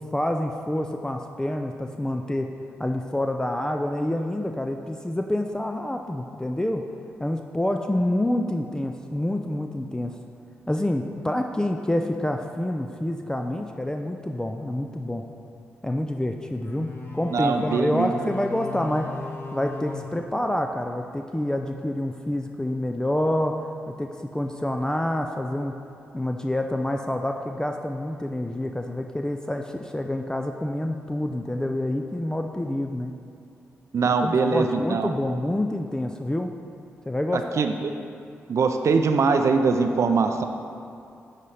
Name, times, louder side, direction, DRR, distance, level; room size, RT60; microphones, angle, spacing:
voice 1, 0.0-2.5 2.8-6.8 7.2-10.1 10.7-15.2 15.8-19.2 19.5-23.5 23.9-25.8 26.1-33.1 34.1-36.5 37.1-37.6, left 1 dB, 10° left, 4 dB, 0.4 m, -27 dB
sound 1, 16.6-21.1, left 4 dB, 45° left, 0.9 m, -38 dB
voice 2, 17.3-18.3 33.9-35.1 37.3-37.9 38.5-40.4, right 4 dB, 60° right, 6 dB, 0.4 m, -22 dB
10.0 x 4.0 x 3.3 m, 2.5 s
supercardioid pair, 40°, 6 cm